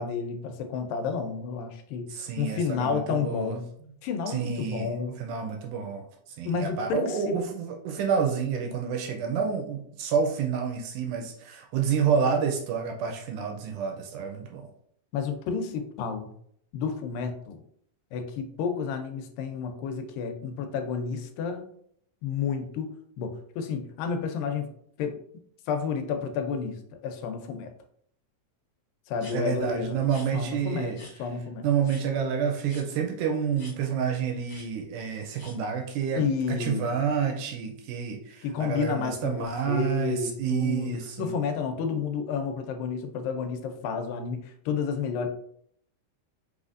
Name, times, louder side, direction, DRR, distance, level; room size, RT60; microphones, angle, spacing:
voice 1, 0.0-3.7 4.0-5.2 6.5-7.4 15.1-16.3 16.7-17.6 18.1-21.7 22.2-22.9 23.2-24.7 25.0-25.2 25.7-26.8 27.0-27.7 29.1-30.0 30.3-31.6 36.2-36.9 38.4-45.3, left 6 dB, 90° left, 6 dB, 2.4 m, -31 dB
voice 2, 2.1-3.6 4.3-4.9 5.2-14.7 29.3-31.0 31.6-41.3 41.9-42.0, right 7 dB, 80° right, 3 dB, 1.9 m, -29 dB
sound 1, 29.2-29.4 30.0-30.3 31.0-31.1 31.8-32.0 32.6-32.9 33.6-33.7 34.4-34.7 35.3-35.5, left 1 dB, 40° left, 1.8 m, -47 dB
5.6 x 3.3 x 2.5 m, 0.66 s
omnidirectional pair, 3.9 m